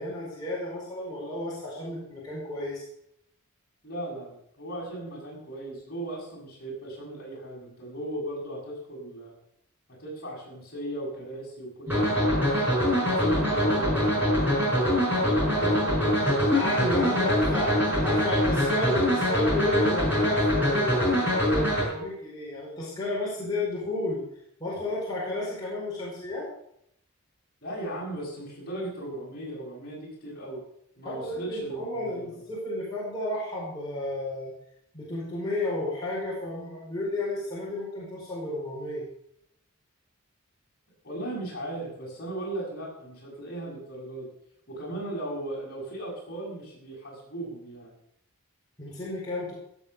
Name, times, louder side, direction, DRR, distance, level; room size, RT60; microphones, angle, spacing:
voice 1, 0.0-2.8 16.5-17.7 18.0-24.2 24.6-26.5 31.0-34.5 34.9-39.0 48.8-49.5, left 1 dB, 20° left, -7 dB, 4.9 m, -32 dB
voice 2, 3.8-9.3 9.9-12.5 13.0-16.4 17.2-17.4 17.6-18.1 27.6-30.6 31.0-32.4 41.0-44.3 44.7-47.9, right 1 dB, 45° left, -4 dB, 7.2 m, -37 dB
sound 1, 11.9-21.8, equal, 10° right, 6.2 m, -24 dB
16.5 x 8.1 x 6.8 m, 0.74 s
head